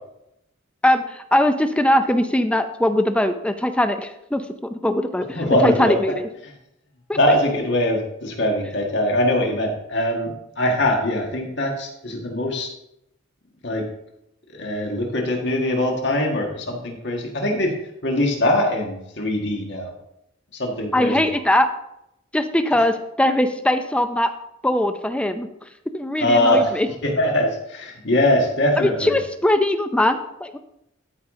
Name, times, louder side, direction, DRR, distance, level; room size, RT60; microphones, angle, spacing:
voice 1, 0.8-4.4 4.7-6.3 7.1-7.2 20.9-21.7 22.3-24.3 24.6-25.5 25.9-26.9 28.8-30.6, left 1 dB, 5° left, 8 dB, 0.5 m, -21 dB
voice 2, 5.4-6.0 7.1-12.7 13.6-13.8 14.5-17.7 18.0-19.9 20.5-21.3 26.2-26.7 27.0-29.2, left 1 dB, 60° left, 1 dB, 1.7 m, -22 dB
13.0 x 4.9 x 3.8 m, 0.83 s
head